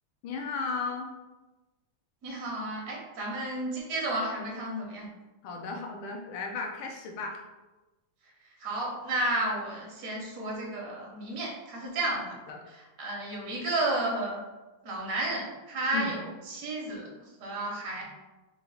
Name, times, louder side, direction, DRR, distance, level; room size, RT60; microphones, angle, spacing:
voice 1, 0.2-1.1 5.4-7.4 12.5-12.6 15.9-16.2, left 4 dB, 80° left, 1 dB, 1.4 m, -35 dB
voice 2, 2.2-5.1 8.6-12.4 12.7-14.4 14.8-17.1 17.4-18.0, right 1 dB, 65° right, -2 dB, 0.9 m, -32 dB
3.8 x 2.1 x 3.9 m, 1.1 s
omnidirectional pair, 2.3 m